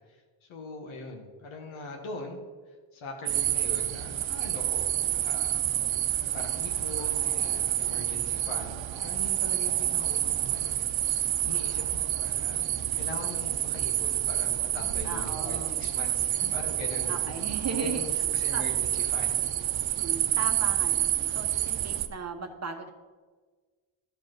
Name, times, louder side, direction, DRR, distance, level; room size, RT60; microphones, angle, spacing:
voice 1, 0.1-2.4 2.7-5.6 6.3-10.9 11.4-17.2 17.7-19.4, left 3 dB, 85° left, 1 dB, 1.7 m, -42 dB
sound 1, 3.3-22.1, right 12 dB, 75° right, 0.8 m, -28 dB
voice 2, 15.0-15.8 17.1-18.0 18.5-18.6 20.0-22.9, right 5 dB, 35° right, 5 dB, 1.0 m, -36 dB
13.5 x 5.3 x 6.1 m, 1.4 s
cardioid pair, 100°, 46 cm